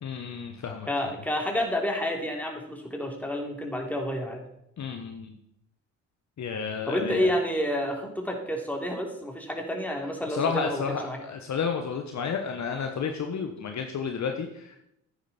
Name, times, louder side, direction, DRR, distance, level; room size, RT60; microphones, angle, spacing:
voice 1, 0.0-1.1 4.8-5.4 6.4-7.3 10.3-14.8, left 6 dB, 45° left, 4 dB, 1.3 m, -31 dB
voice 2, 0.9-4.4 6.9-11.2, equal, 5° left, 1 dB, 3.3 m, -29 dB
10.5 x 9.5 x 4.4 m, 0.79 s
hypercardioid pair, 50°, 39 cm